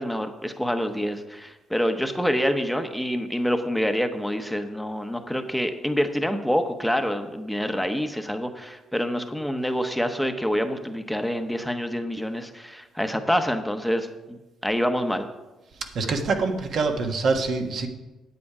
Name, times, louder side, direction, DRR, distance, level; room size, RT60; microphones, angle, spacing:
voice 1, 0.0-15.3, equal, ahead, 7 dB, 0.9 m, -26 dB
voice 2, 15.9-17.9, right 4 dB, 60° right, 4 dB, 1.4 m, -25 dB
9.8 x 8.4 x 4.9 m, 1.1 s
cardioid pair, 90°, 0 cm